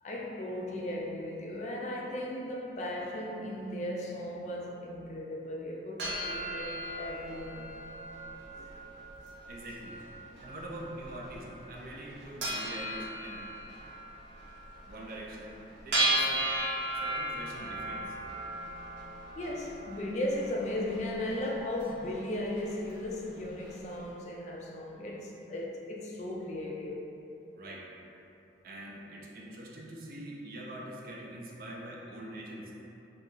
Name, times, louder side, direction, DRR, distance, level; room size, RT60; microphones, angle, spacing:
voice 1, 0.0-7.7 8.5-8.8 19.4-27.1, left 1 dB, 40° left, 0.3 m, -36 dB
sound 1, 6.0-23.9, right 1 dB, 80° right, 0.7 m, -37 dB
voice 2, 9.5-10.0 10.4-13.5 14.9-16.5 16.9-18.2 27.5-27.9 28.6-32.7, right 1 dB, 50° right, 0.4 m, -44 dB
2.7 x 2.4 x 3.7 m
head